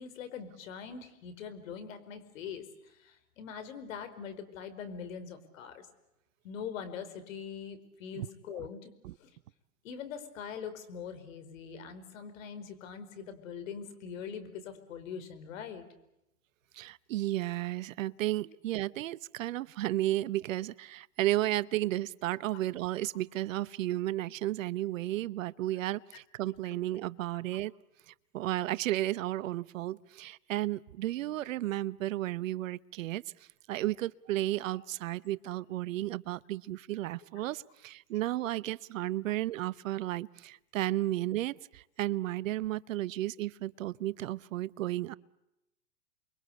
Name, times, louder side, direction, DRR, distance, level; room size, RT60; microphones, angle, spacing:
voice 1, 0.0-5.9 6.4-8.9 9.2-9.3 9.8-15.9 26.6-26.8 39.3-39.4, left 7 dB, 65° left, 11 dB, 5.0 m, -43 dB
voice 2, 16.7-27.7 28.1-33.2 33.7-45.2, right 15 dB, 65° right, 19 dB, 0.9 m, -33 dB
30.0 x 23.0 x 8.3 m, 0.90 s
hypercardioid pair, 115°, 43 cm